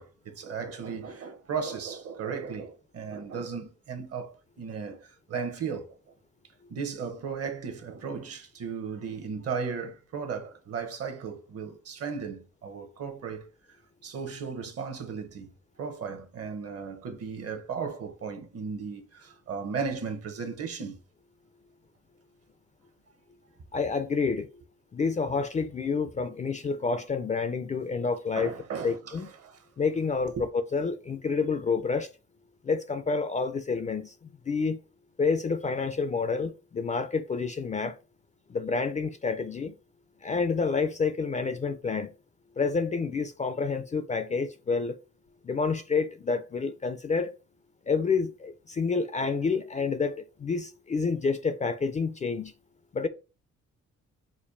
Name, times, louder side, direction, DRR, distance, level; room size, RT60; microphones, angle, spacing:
voice 1, 0.0-5.9 6.7-13.5 14.0-15.5 15.8-21.0 28.4-29.6 30.4-30.5, right 6 dB, 50° right, 0.8 m, -36 dB
voice 2, 23.7-24.5 24.9-28.5 28.8-29.3 29.8-32.1 32.6-34.1 34.5-34.8 35.2-38.0 38.5-39.7 40.2-42.1 42.6-45.0 45.4-47.3 47.9-52.5 52.9-53.1, left 4 dB, 25° left, 0.3 m, -28 dB
5.2 x 2.2 x 2.5 m
cardioid pair, 90°, 30 cm